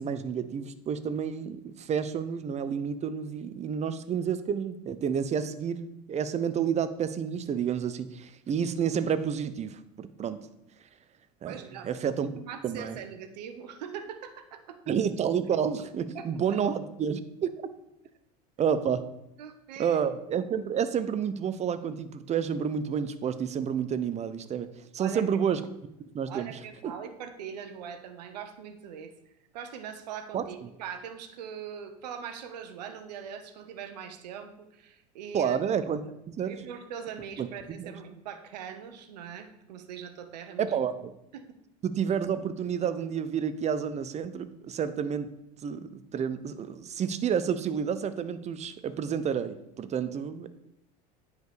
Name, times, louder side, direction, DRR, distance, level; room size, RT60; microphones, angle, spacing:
voice 1, 0.0-10.5 11.4-12.3 12.6-13.0 14.9-17.7 18.6-19.0 19.8-24.7 24.9-25.6 26.1-26.6 26.8-26.9 30.3-30.5 35.3-36.0 36.3-36.6 37.4-37.9 40.6-41.1 41.8-45.3 45.6-50.5, right 7 dB, 35° right, 12 dB, 0.8 m, -30 dB
voice 2, 11.4-14.8 16.1-16.6 19.4-20.0 25.0-25.2 26.3-29.1 29.5-35.6 36.0-36.1 36.4-40.8 41.3-41.4, right 8 dB, 80° right, 8 dB, 1.1 m, -41 dB
9.2 x 4.9 x 5.0 m, 0.84 s
hypercardioid pair, 90°, 21 cm